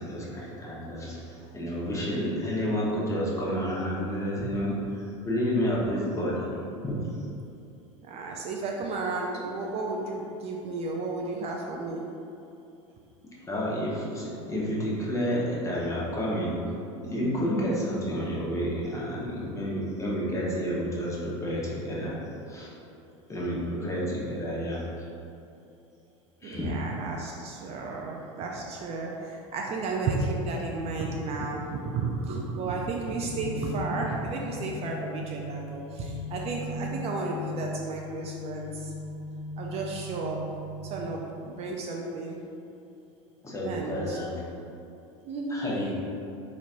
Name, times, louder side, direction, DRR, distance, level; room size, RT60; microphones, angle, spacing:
voice 1, 0.0-6.6 6.8-7.2 13.5-16.6 17.0-22.2 22.5-22.8 23.3-25.1 26.4-26.9 43.4-44.4 45.5-45.9, equal, 20° left, -6 dB, 1.0 m, -30 dB
voice 2, 8.0-12.1 24.0-24.1 26.4-38.9 39.6-40.4 40.8-42.4 43.6-44.2 45.3-45.8, right 3 dB, 40° right, -1 dB, 0.4 m, -33 dB
sound 1, 33.2-41.2, left 1 dB, 45° left, 0.4 m, -38 dB
4.1 x 3.1 x 2.5 m, 2.7 s
hypercardioid pair, 95°, 16 cm